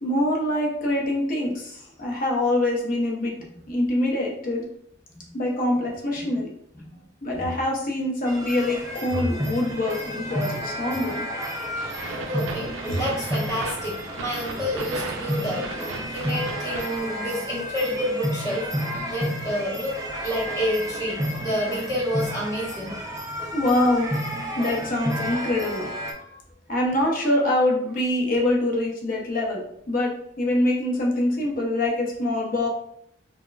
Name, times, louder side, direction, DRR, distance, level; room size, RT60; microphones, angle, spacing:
voice 1, 0.0-3.4 3.7-4.7 5.3-6.5 7.2-11.3 23.5-24.1 24.6-26.4 26.7-32.7, left 1 dB, 45° left, -1 dB, 0.6 m, -24 dB
sound 1, 7.3-8.0 9.1-9.7 10.9-11.3 11.6-11.7 12.9-13.9 14.3-15.1, equal, 85° left, 0.6 m, -34 dB
sound 2, 8.2-26.1, equal, 15° right, 0.3 m, -31 dB
sound 3, 11.7-17.0, right 3 dB, 85° right, 0.4 m, -36 dB
voice 2, 12.1-15.7 16.1-18.7 19.1-20.0 20.2-23.0, equal, 15° left, -5 dB, 0.8 m, -29 dB
3.6 x 2.0 x 2.2 m, 0.72 s
head